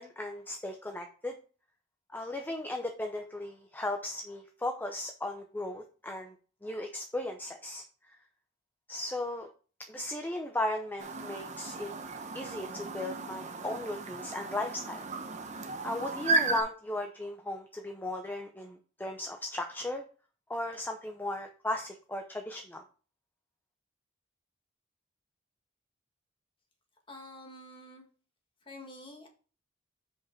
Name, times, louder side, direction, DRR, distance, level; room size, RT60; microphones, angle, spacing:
voice 1, 0.0-1.3 2.1-6.4 6.6-7.8 8.9-9.5 9.9-11.9 12.3-15.0 15.8-20.0 20.5-22.8, left 1 dB, 10° left, 4 dB, 0.5 m, -36 dB
Chirp tweet, 11.0-16.6, right 3 dB, 40° right, 0.9 m, -34 dB
voice 2, 27.1-28.0 28.6-29.3, left 1 dB, 25° left, 2 dB, 1.6 m, -48 dB
6.1 x 5.2 x 4.4 m, 0.39 s
head